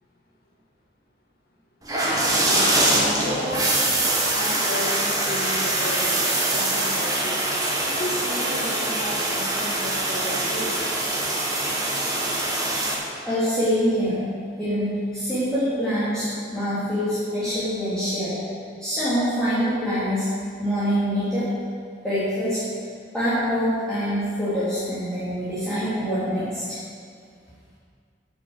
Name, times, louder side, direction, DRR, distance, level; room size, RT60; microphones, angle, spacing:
sound 1, 1.8-12.9, right 1 dB, 20° right, 1.8 m, -23 dB
voice 1, 2.3-3.7 4.3-6.2 6.5-7.5 7.9-10.8, left 1 dB, 55° left, -4 dB, 2.2 m, -33 dB
voice 2, 13.2-14.3 14.6-18.4 18.8-20.3 20.6-21.5 22.0-22.6 23.1-26.8, equal, 5° left, -15 dB, 3.2 m, -25 dB
10.0 x 7.3 x 8.0 m, 2.2 s
head